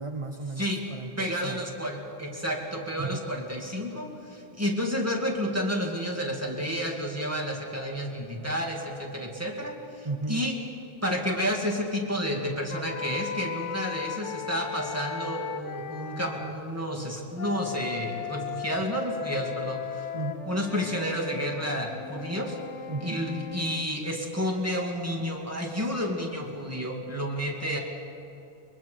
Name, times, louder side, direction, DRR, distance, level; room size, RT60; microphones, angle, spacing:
voice 1, 0.0-1.6 3.0-3.2 10.0-10.5 20.1-20.5 22.9-23.2, right 3 dB, 30° right, 4 dB, 0.8 m, -34 dB
voice 2, 1.2-10.5 11.0-20.1 20.5-22.6 23.0-27.8, equal, 10° right, 0 dB, 2.3 m, -30 dB
sound 1, 12.7-16.6 17.3-23.9, left 8 dB, 70° left, 1.1 m, -37 dB
23.0 x 22.5 x 5.2 m, 2.6 s
omnidirectional pair, 1.3 m